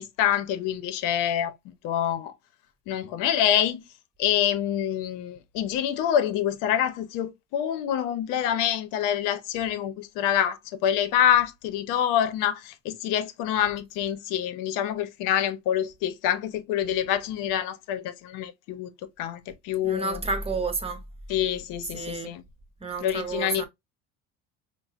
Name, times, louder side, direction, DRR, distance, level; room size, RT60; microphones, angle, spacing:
voice 1, 0.0-1.6 1.8-2.3 2.9-3.8 4.2-18.9 19.2-20.2 21.3-22.4 23.0-23.7, left 10 dB, 75° left, 0.8 m, -26 dB
voice 2, 19.8-21.0 21.9-22.3 22.8-23.7, right 3 dB, 20° right, 0.9 m, -30 dB
5.3 x 2.1 x 2.5 m
cardioid pair, 110°, 32 cm